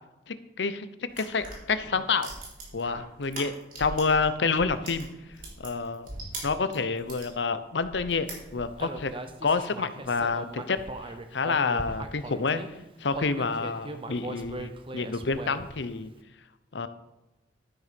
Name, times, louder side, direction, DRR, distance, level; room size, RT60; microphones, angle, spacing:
voice 1, 0.3-0.9 1.2-2.3 2.7-3.5 3.8-5.1 5.6-6.1 6.4-10.8 11.3-12.6 13.0-16.1 16.7-16.9, left 4 dB, 80° left, 12 dB, 0.7 m, -28 dB
sound 1, 1.1-4.2 4.5-7.3 7.8-8.9, right 2 dB, 50° right, 3.7 m, -41 dB
Human voice, 8.8-12.7 13.1-15.8, right 2 dB, 30° right, 0.9 m, -39 dB
12.5 x 6.7 x 5.2 m, 0.97 s
head